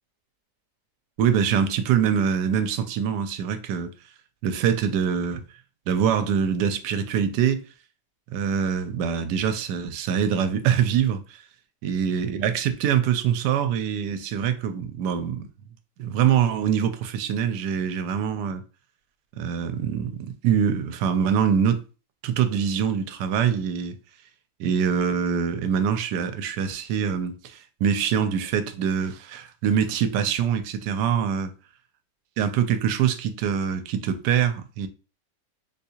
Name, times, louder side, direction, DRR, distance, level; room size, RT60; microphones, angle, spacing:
voice 1, 1.2-3.9 4.4-5.4 5.9-7.6 8.3-11.2 11.8-15.5 16.0-18.6 19.3-21.8 22.2-24.0 24.6-31.5 32.4-34.9, right 8 dB, 80° right, 1.1 m, -24 dB
3.6 x 2.7 x 2.8 m
omnidirectional pair, 1.8 m